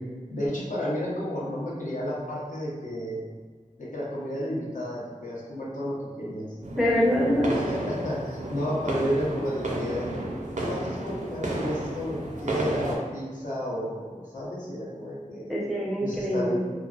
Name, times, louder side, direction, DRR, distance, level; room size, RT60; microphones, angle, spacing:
voice 1, 0.3-3.3 3.8-6.4 7.7-10.1 10.6-15.5 16.0-16.6, equal, 70° left, -7 dB, 0.7 m, -32 dB
sound 1, 6.6-13.0, right 1 dB, 65° right, 0.4 m, -32 dB
voice 2, 6.7-7.5 15.5-16.6, left 1 dB, ahead, -5 dB, 0.5 m, -24 dB
2.5 x 2.3 x 2.3 m, 1.5 s
wide cardioid pair, 55°, 14 cm